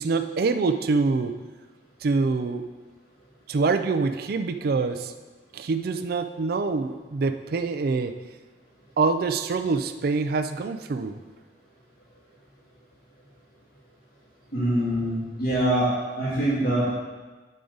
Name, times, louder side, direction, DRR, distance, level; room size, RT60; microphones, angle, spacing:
voice 1, 0.0-1.4 2.0-2.7 3.5-5.1 5.5-8.1 9.0-11.2, right 4 dB, 60° right, 9 dB, 0.4 m, -25 dB
voice 2, 14.5-15.9 16.2-16.9, right 1 dB, 55° left, -12 dB, 2.1 m, -24 dB
9.3 x 5.0 x 3.9 m, 1.3 s
head